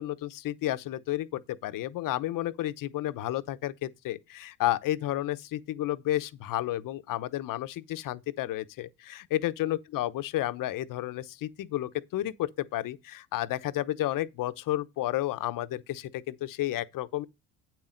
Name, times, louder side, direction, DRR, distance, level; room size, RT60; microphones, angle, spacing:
voice 1, 0.0-17.3, left 14 dB, 55° left, 0.9 m, -31 dB
8.7 x 7.6 x 3.9 m
supercardioid pair, 75°, 39 cm